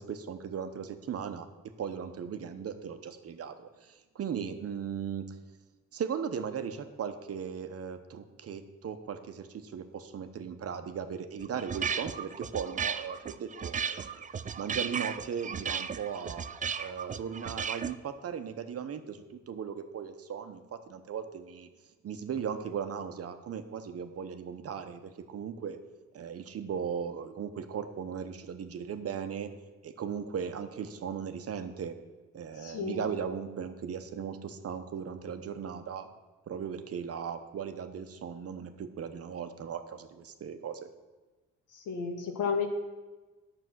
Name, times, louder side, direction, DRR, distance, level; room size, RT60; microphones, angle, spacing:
voice 1, 0.0-1.5 1.8-5.4 5.9-14.2 14.6-16.4 16.8-21.7 22.0-25.8 26.1-29.5 29.8-31.9 32.3-36.1 36.5-40.9, right 7 dB, 50° right, 8 dB, 0.9 m, -37 dB
sound 1, 11.4-17.9, right 7 dB, 25° right, 0.4 m, -35 dB
voice 2, 32.5-33.1 41.7-42.7, left 5 dB, 80° left, 4 dB, 1.6 m, -32 dB
9.4 x 6.9 x 6.2 m, 1.2 s
cardioid pair, 90°, 30 cm